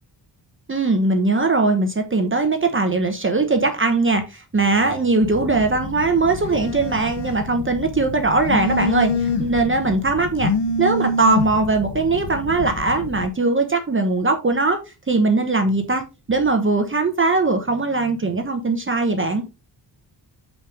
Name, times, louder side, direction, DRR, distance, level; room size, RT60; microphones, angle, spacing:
voice 1, 0.7-10.5 10.8-14.8 15.1-19.4, right 3 dB, 25° right, 1.0 m, -20 dB
Telephone, 5.2-13.3, left 3 dB, 65° left, 0.8 m, -27 dB
6.8 x 5.7 x 3.6 m
wide cardioid pair, 130°, 45 cm